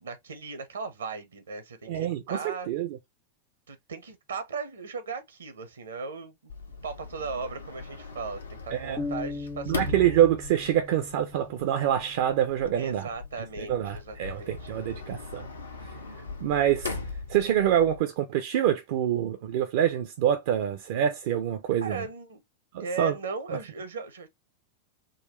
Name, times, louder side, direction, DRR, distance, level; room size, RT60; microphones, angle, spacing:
voice 1, 0.0-2.7 3.7-6.5 6.8-10.2 12.7-14.7 21.7-22.4 22.8-24.3, right 4 dB, 70° right, 0.8 m, -37 dB
voice 2, 1.9-3.0 8.7-9.1 9.7-13.1 13.6-15.5 15.8-15.9 16.4-17.0 17.3-22.0 22.7-23.2, right 10 dB, 50° right, 0.5 m, -26 dB
Sliding door, 6.5-18.0, left 3 dB, 75° left, 0.7 m, -40 dB
sound 1, 9.0-12.7, left 3 dB, 15° left, 0.4 m, -39 dB
3.9 x 2.3 x 3.0 m
figure-of-eight pair, 90°, 0 cm